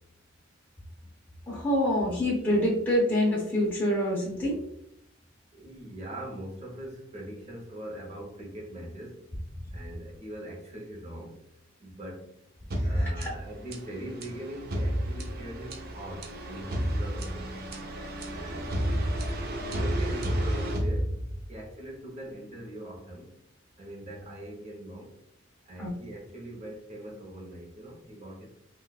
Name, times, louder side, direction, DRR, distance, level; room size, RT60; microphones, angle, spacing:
voice 1, 1.5-4.6 12.7-13.3 25.8-25.9, left 1 dB, 10° left, -6 dB, 0.7 m, -26 dB
voice 2, 5.5-9.3 9.7-11.4 11.8-12.3 12.8-17.5 18.3-21.1 21.5-23.3 23.8-25.1 25.6-28.6, right 1 dB, 35° right, -1 dB, 0.9 m, -42 dB
sound 1, 12.7-21.6, equal, 50° right, 0.5 m, -31 dB
3.7 x 2.4 x 2.3 m, 0.76 s
head